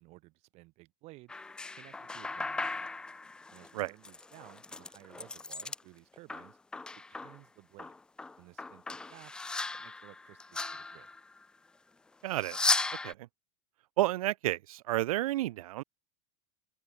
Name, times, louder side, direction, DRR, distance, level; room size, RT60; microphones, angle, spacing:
voice 1, 0.0-1.4 1.8-2.8 3.5-6.6 7.1-8.0 8.4-9.3 9.7-11.1, right 22 dB, 35° right, 2.3 m, -56 dB
sound 1, 1.3-5.8 6.1-7.4 7.8-11.4 12.3-13.1, left 3 dB, 5° left, 0.4 m, -36 dB
voice 2, 12.2-12.6 13.0-13.3 14.0-15.8, right 16 dB, 85° right, 0.9 m, -31 dB
open air
supercardioid pair, 165°, 18 cm